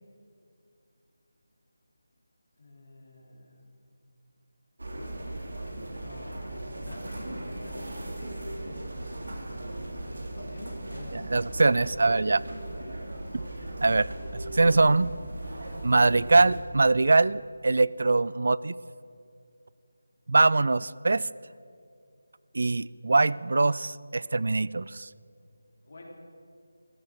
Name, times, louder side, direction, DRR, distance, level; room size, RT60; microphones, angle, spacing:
voice 1, 2.6-3.6 6.0-6.6 6.8-9.5 10.4-11.3 25.8-26.1, left 1 dB, 55° left, 0 dB, 3.6 m, -48 dB
sound 1, 4.8-16.6, right 1 dB, 85° right, 3.2 m, -38 dB
voice 2, 11.1-12.4 13.8-14.1 14.4-15.1 15.8-18.7 20.3-21.3 22.5-25.1, right 3 dB, 65° right, 20 dB, 0.3 m, -23 dB
14.5 x 12.0 x 6.5 m, 2.4 s
figure-of-eight pair, 170°, 0 cm